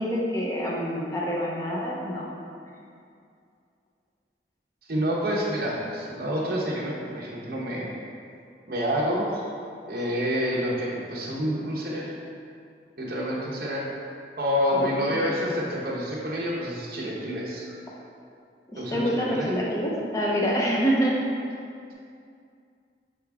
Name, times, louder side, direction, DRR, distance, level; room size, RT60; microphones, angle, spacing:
voice 1, 0.0-2.2 14.7-15.2 18.7-21.1, equal, 20° left, -4 dB, 0.7 m, -26 dB
voice 2, 4.9-7.9 8.7-9.4 9.9-12.1 13.0-13.8 14.4-17.8 18.8-19.5, equal, 55° right, -7 dB, 1.0 m, -28 dB
5.9 x 4.8 x 3.5 m, 2.4 s
head